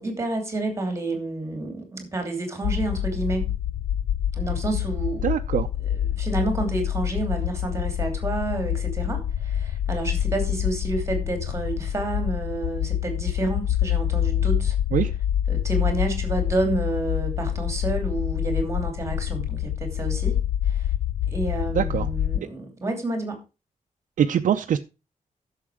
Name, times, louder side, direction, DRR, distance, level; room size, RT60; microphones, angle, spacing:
voice 1, 0.0-3.5 4.3-5.3 5.8-14.8 15.5-20.4 20.6-20.9 21.3-23.4, right 2 dB, 20° right, 2.9 m, -29 dB
sound 1, 2.6-22.4, left 10 dB, 85° left, 0.5 m, -26 dB
voice 2, 5.2-5.7 14.9-15.1 21.7-22.1 24.2-24.8, right 9 dB, 90° right, 0.6 m, -23 dB
11.0 x 6.8 x 4.9 m
wide cardioid pair, 175°, 13 cm